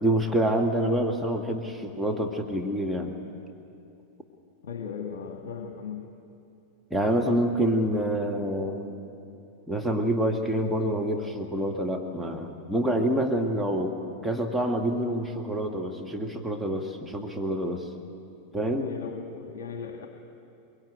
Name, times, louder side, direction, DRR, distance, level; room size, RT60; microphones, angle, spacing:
voice 1, 0.0-3.2 6.9-9.0 9.7-14.0 14.2-17.9 18.5-18.9, right 1 dB, 5° right, 1 dB, 1.8 m, -27 dB
voice 2, 4.6-6.0 18.7-20.1, left 6 dB, 55° left, 4 dB, 1.9 m, -37 dB
23.5 x 23.0 x 9.3 m, 2.7 s
figure-of-eight pair, 90°, 0 cm